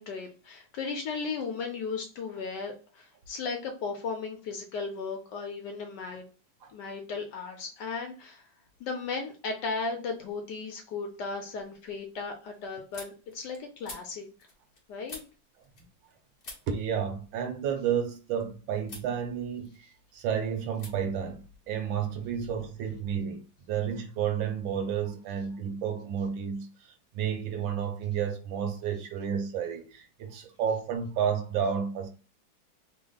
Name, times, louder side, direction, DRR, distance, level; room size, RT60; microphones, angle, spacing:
voice 1, 0.0-6.2 6.7-8.5 8.8-14.3 14.9-15.2, left 4 dB, 70° left, 1.1 m, -36 dB
sound 1, 10.3-10.7 11.1-16.1 16.4-18.4 18.8-19.1 19.5-20.2 20.7-20.9 21.2-22.3, left 2 dB, 50° left, 0.7 m, -50 dB
voice 2, 16.7-19.9 20.1-32.1, right 8 dB, 75° right, 1.4 m, -31 dB
3.4 x 2.0 x 3.8 m
omnidirectional pair, 2.2 m